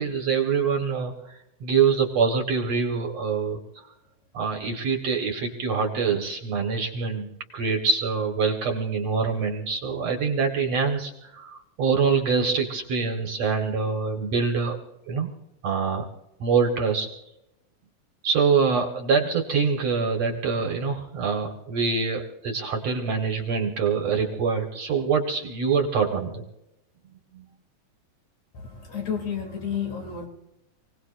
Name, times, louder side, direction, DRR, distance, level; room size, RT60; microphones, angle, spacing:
voice 1, 0.0-1.3 1.6-3.9 4.3-7.3 7.5-14.8 15.1-15.3 15.6-16.1 16.4-17.1 18.2-26.5 27.3-27.5, right 5 dB, 55° right, 4 dB, 2.4 m, -25 dB
voice 2, 28.5-30.3, left 7 dB, 50° left, 2 dB, 3.7 m, -31 dB
28.5 x 18.5 x 2.6 m, 0.87 s
omnidirectional pair, 3.9 m